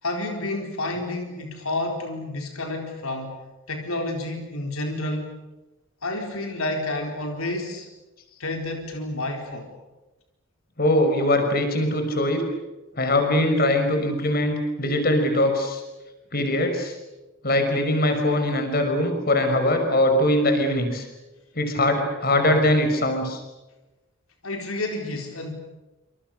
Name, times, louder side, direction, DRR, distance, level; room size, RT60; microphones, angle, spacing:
voice 1, 0.0-3.4 3.7-5.3 6.0-7.9 8.4-9.7 24.4-25.5, left 2 dB, 80° left, 3 dB, 4.3 m, -30 dB
voice 2, 10.8-12.4 13.0-15.8 16.3-16.9 17.4-21.1 21.6-23.4, left 1 dB, 45° left, 6 dB, 5.7 m, -22 dB
28.0 x 27.0 x 6.8 m, 1.1 s
head